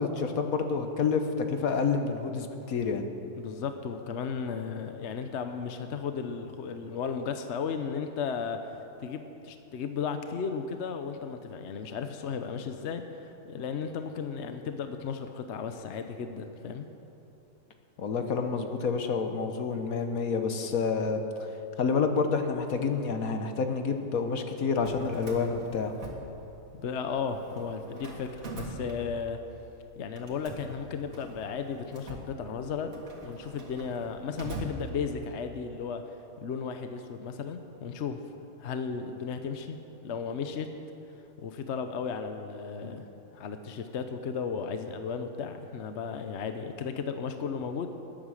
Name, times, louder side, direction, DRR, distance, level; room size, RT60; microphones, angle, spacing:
voice 1, 0.0-3.1 18.0-21.2 21.8-25.9, left 5 dB, 70° left, 6 dB, 1.5 m, -28 dB
voice 2, 3.4-8.6 9.0-16.9 26.7-29.4 30.0-36.0 36.4-38.2 38.6-39.8 40.0-40.7 41.4-47.9, left 6 dB, 55° left, 7 dB, 1.0 m, -35 dB
Drawer open or close, 24.7-26.8 27.1-29.5 30.2-35.4, right 2 dB, 65° right, 2.2 m, -43 dB
20.0 x 8.9 x 6.4 m, 2.9 s
omnidirectional pair, 1.5 m